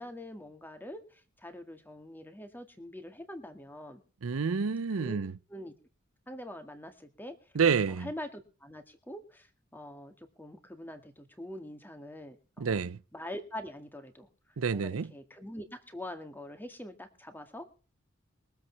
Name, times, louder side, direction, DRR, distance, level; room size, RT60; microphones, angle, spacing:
voice 1, 0.0-4.0 5.0-5.2 5.5-5.7 6.3-7.5 7.9-12.8 13.1-14.3 14.7-17.7, left 1 dB, 10° left, 1.9 m, -44 dB
voice 2, 4.2-5.3 7.6-8.1 12.6-13.0 14.6-15.1, right 6 dB, 85° right, 0.6 m, -28 dB
22.0 x 8.0 x 4.6 m
head